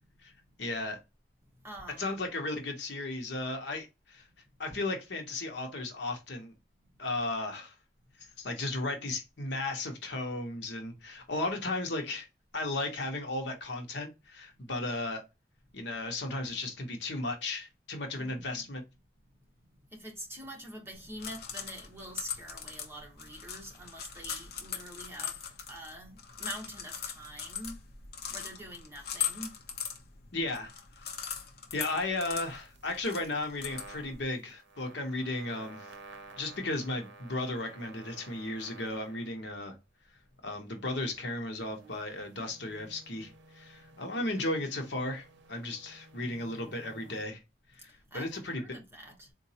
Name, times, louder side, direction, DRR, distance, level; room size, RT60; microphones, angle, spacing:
voice 1, 0.6-1.0 2.0-4.3 4.6-6.5 7.0-7.7 8.4-12.3 12.5-15.2 15.7-18.8 30.3-30.7 31.7-35.9 36.4-39.7 40.4-47.4 47.7-48.6, left 2 dB, 75° left, 1.0 m, -35 dB
voice 2, 1.6-2.2 18.2-18.7 19.9-25.4 25.7-27.8 28.3-29.5 44.1-44.5 48.1-49.3, equal, 15° right, 1.1 m, -45 dB
sound 1, 20.9-34.2, left 8 dB, 55° left, 0.7 m, -40 dB
sound 2, 32.2-39.5 40.6-47.2, right 3 dB, 80° right, 0.6 m, -54 dB
4.0 x 2.5 x 2.8 m
head